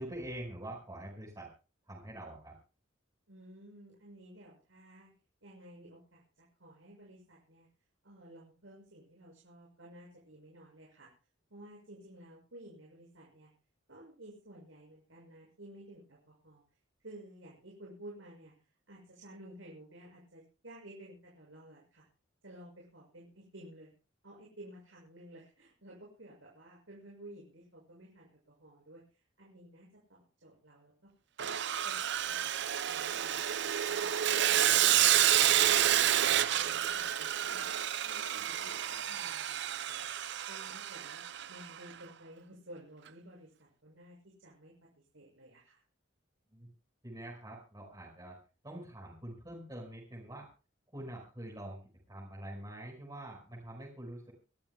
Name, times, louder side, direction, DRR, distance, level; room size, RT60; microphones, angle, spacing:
voice 1, 0.0-1.5 1.9-2.5 46.5-46.7 47.0-48.4 48.6-50.5 50.9-51.8 52.1-54.3, right 1 dB, 20° right, -5 dB, 5.5 m, -45 dB
voice 2, 3.3-5.1 5.4-7.7 8.0-11.1 11.5-13.5 13.9-16.6 17.0-18.5 18.9-22.0 22.4-23.9 24.2-31.1 31.4-31.6 31.8-34.0 34.4-40.0 40.4-41.2 41.5-43.5 43.8-45.8, right 1 dB, 80° right, -3 dB, 6.9 m, -54 dB
Sawing, 31.4-41.6, right 11 dB, 65° right, 0.6 m, -29 dB
27.5 x 14.0 x 2.3 m, 0.35 s
head